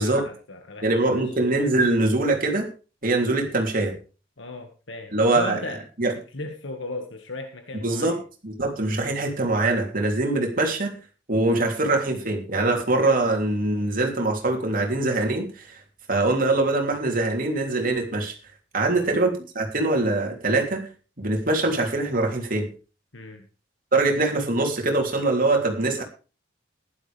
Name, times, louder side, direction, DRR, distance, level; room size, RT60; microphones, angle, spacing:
voice 1, 0.0-1.2 4.4-5.8 6.1-8.2 18.9-19.1 23.1-23.5, left 2 dB, 70° left, 5 dB, 1.8 m, -36 dB
voice 2, 0.8-2.7 3.0-4.0 5.1-5.6 6.0-6.1 7.8-11.0 11.3-15.8 16.1-18.3 18.7-20.9 21.2-22.7 23.9-26.0, right 2 dB, 45° right, 2 dB, 3.2 m, -23 dB
15.5 x 11.5 x 3.5 m, 0.34 s
head